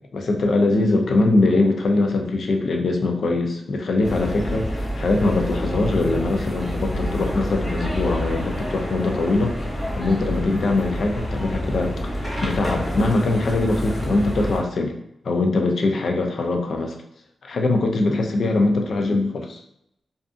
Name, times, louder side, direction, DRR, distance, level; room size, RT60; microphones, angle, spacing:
voice 1, 0.1-9.5 10.0-14.9 15.2-17.0 17.4-19.6, left 2 dB, 70° left, 3 dB, 0.4 m, -22 dB
sound 1, 4.0-14.6, equal, 15° left, 1.0 m, -28 dB
2.5 x 2.4 x 2.4 m, 0.76 s
cardioid pair, 70°, 0 cm